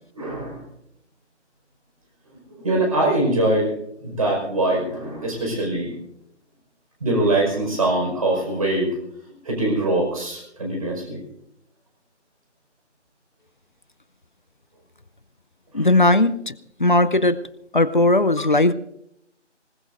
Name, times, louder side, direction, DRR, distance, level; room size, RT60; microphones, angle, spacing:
voice 1, 0.1-0.6 2.5-3.7 4.0-5.9 7.0-8.9 9.4-11.2 15.7-15.9, right 2 dB, 30° right, -1 dB, 5.2 m, -23 dB
voice 2, 15.7-16.5 16.8-17.4 17.7-18.7, left 2 dB, 45° left, 15 dB, 0.6 m, -17 dB
25.0 x 19.5 x 2.6 m, 0.74 s
figure-of-eight pair, 165°, 36 cm